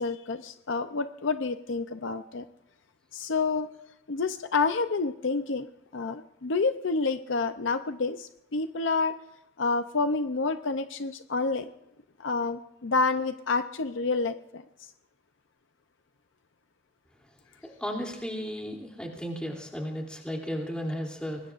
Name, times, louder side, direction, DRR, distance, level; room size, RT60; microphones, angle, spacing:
voice 1, 0.0-2.4 3.1-3.7 4.1-5.7 5.9-9.2 9.6-11.7 12.2-14.6, left 4 dB, 60° left, 9 dB, 0.6 m, -28 dB
voice 2, 17.6-21.4, equal, 5° left, 0 dB, 3.0 m, -34 dB
25.0 x 20.5 x 2.5 m, 0.85 s
head